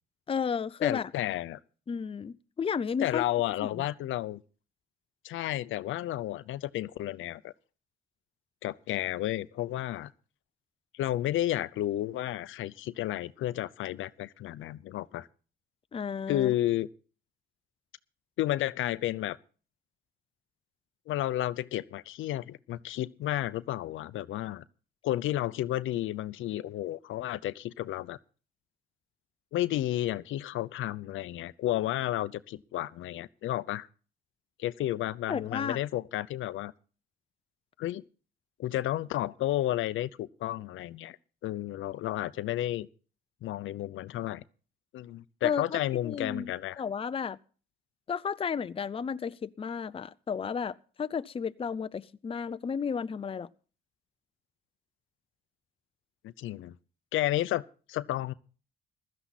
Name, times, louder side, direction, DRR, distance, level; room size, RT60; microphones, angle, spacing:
voice 1, 0.3-1.1 1.9-3.2 3.6-3.8 15.9-16.5 35.3-35.8 45.4-47.4 48.1-53.5, left 6 dB, 30° left, 0.5 m, -33 dB
voice 2, 0.8-1.6 3.0-4.4 5.2-7.5 8.6-10.1 10.9-15.3 16.3-16.9 18.4-19.4 21.1-24.6 25.0-28.2 29.5-33.9 34.6-36.7 37.8-38.0 38.6-41.2 41.4-42.9 43.4-44.4 44.9-46.8 56.2-56.7 57.1-58.3, left 14 dB, 80° left, 0.7 m, -32 dB
16.0 x 13.0 x 4.1 m
cardioid pair, 90°, 20 cm